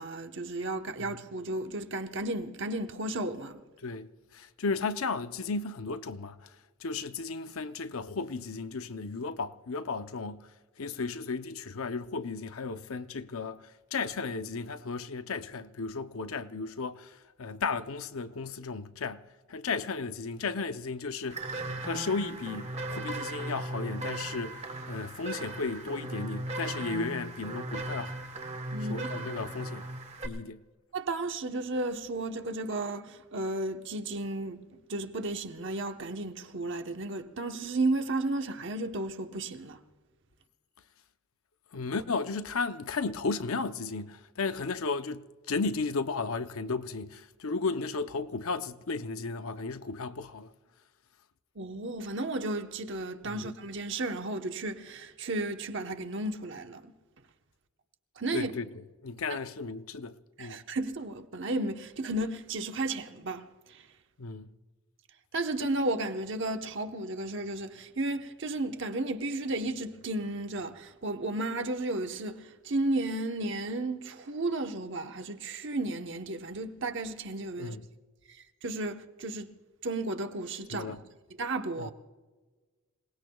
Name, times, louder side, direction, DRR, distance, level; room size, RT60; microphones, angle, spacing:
voice 1, 0.0-3.6 28.7-29.1 30.9-34.6 34.9-39.8 51.6-56.9 58.2-58.5 59.3-59.4 60.4-63.8 65.3-77.8 78.6-79.5 79.8-80.9 81.4-81.9, right 2 dB, 55° right, 1.0 m, -33 dB
voice 2, 3.8-6.5 6.8-10.4 10.8-13.6 13.9-19.2 19.5-21.5 21.8-28.2 28.9-29.9 30.2-30.6 41.7-50.5 53.2-53.5 58.3-58.7 59.0-60.6 64.2-64.5 77.6-77.8 80.7-81.0 81.8-81.9, left 4 dB, 75° left, 0.7 m, -34 dB
sound 1, 21.3-30.3, right 2 dB, 30° right, 1.1 m, -37 dB
28.0 x 18.5 x 2.3 m
head